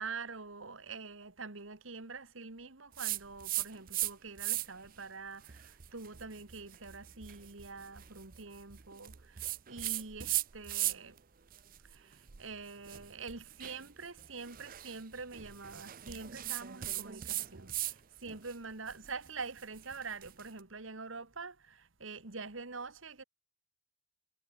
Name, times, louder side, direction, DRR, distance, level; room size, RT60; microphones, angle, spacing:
voice 1, 0.0-11.2 11.8-23.2, right 4 dB, 75° right, 1.9 m, -45 dB
sound 1, 3.0-4.1 4.4-4.9 5.4-11.2 11.5-18.0 18.3-20.5, right 15 dB, 45° right, 0.6 m, -38 dB
head